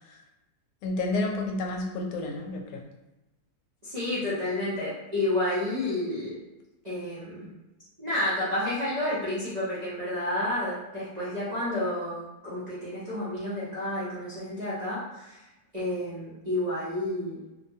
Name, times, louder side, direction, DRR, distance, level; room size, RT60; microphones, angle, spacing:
voice 1, 0.8-2.8, left 2 dB, 75° left, 1 dB, 1.1 m, -30 dB
voice 2, 3.8-6.4 6.8-7.5 8.0-15.4 15.7-17.4, left 1 dB, 40° right, -12 dB, 0.6 m, -30 dB
2.7 x 2.1 x 2.7 m, 0.98 s
omnidirectional pair, 1.7 m